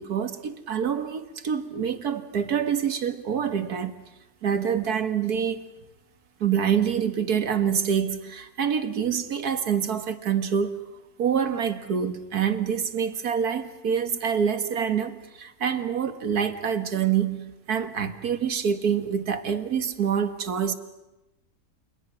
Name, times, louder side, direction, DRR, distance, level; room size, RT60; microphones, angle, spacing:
voice 1, 0.0-3.9 4.4-5.7 6.4-10.8 11.2-20.8, right 7 dB, 65° right, 2.0 m, -26 dB
29.5 x 27.5 x 6.2 m
omnidirectional pair, 1.8 m